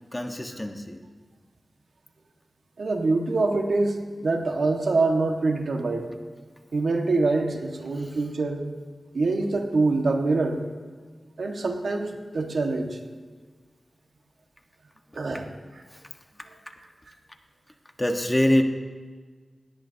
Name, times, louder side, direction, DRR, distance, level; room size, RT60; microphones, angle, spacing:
voice 1, 0.1-1.0 4.4-4.5 7.9-8.2 12.4-12.5 15.9-16.0 16.4-16.5 18.0-18.6, left 1 dB, 20° left, 4 dB, 1.5 m, -25 dB
voice 2, 2.8-6.1 6.7-8.6 9.1-10.6 11.4-13.0 15.1-15.5, right 3 dB, 75° right, 2 dB, 1.8 m, -25 dB
20.5 x 17.5 x 2.9 m, 1.5 s
wide cardioid pair, 60°, 0 cm